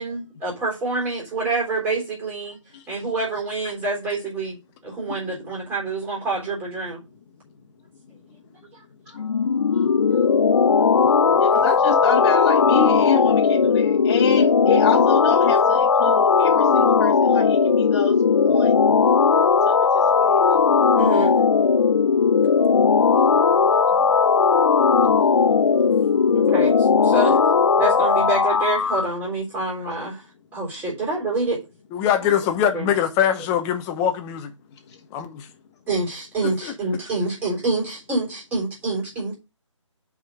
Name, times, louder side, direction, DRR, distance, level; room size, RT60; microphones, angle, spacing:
voice 1, 0.0-2.6 2.9-4.6 4.8-7.0 9.1-9.2 9.7-9.9 16.2-16.3 21.0-21.3 26.3-27.4 27.8-30.2 30.5-31.6 32.2-32.3 32.7-32.9 35.9-39.3, right 2 dB, 10° right, 3.6 m, -27 dB
sound 1, 9.2-29.1, left 5 dB, 60° left, 0.7 m, -18 dB
voice 2, 11.4-18.1 18.4-18.7 19.7-19.8 20.2-20.4, left 6 dB, 35° left, 1.4 m, -26 dB
voice 3, 31.9-34.5 35.1-35.5 36.6-36.7, left 9 dB, 15° left, 0.9 m, -22 dB
6.3 x 5.1 x 6.3 m
figure-of-eight pair, 155°, 16 cm